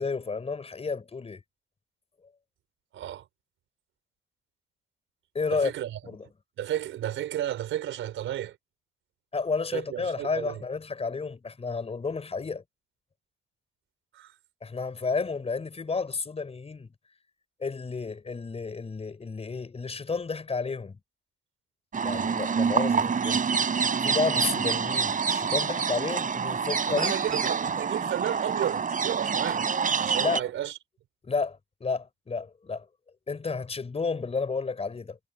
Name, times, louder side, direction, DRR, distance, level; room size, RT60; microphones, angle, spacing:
voice 1, 0.0-1.4 5.3-5.7 6.1-6.3 9.3-12.6 14.6-16.9 17.6-21.0 22.0-23.5 24.0-27.5 30.2-30.5 31.2-32.9 33.3-35.2, left 4 dB, 30° left, 5.2 m, -31 dB
voice 2, 2.9-3.3 5.5-6.1 6.6-8.6 9.7-10.6 14.1-14.3 26.9-29.7 30.0-30.8, right 12 dB, 80° right, 4.6 m, -33 dB
sound 1, 21.9-30.4, right 6 dB, 40° right, 5.3 m, -27 dB
cardioid pair, 90°, 20 cm